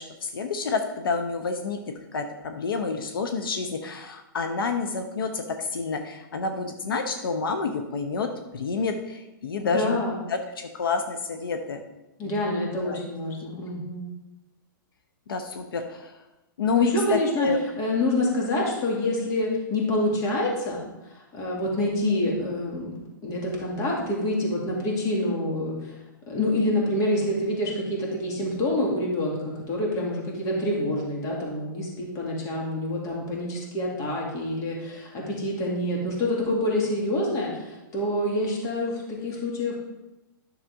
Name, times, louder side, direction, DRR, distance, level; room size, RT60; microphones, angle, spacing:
voice 1, 0.0-1.8 2.1-8.3 8.5-10.0 10.3-11.8 12.2-13.0 15.3-16.2 16.6-17.6, left 4 dB, 85° left, 6 dB, 0.9 m, -29 dB
voice 2, 9.6-10.2 12.2-14.0 16.7-17.5 17.8-20.8 21.3-22.9 23.2-25.9 26.3-39.8, left 1 dB, 30° left, -2 dB, 2.3 m, -27 dB
10.5 x 6.6 x 3.6 m, 0.99 s
hypercardioid pair, 145°, 12 cm